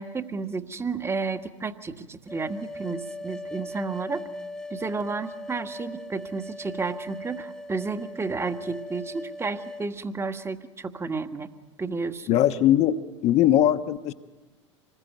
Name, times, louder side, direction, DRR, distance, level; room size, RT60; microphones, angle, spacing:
voice 1, 0.0-4.3 4.7-11.5 11.8-12.3, right 4 dB, 15° right, 8 dB, 1.7 m, -32 dB
sound 1, 2.3-9.9, left 1 dB, 5° left, 1.1 m, -39 dB
voice 2, 12.3-13.0 13.2-14.1, left 12 dB, 45° left, 9 dB, 1.2 m, -20 dB
26.5 x 21.0 x 9.4 m, 1.2 s
figure-of-eight pair, 75°, 16 cm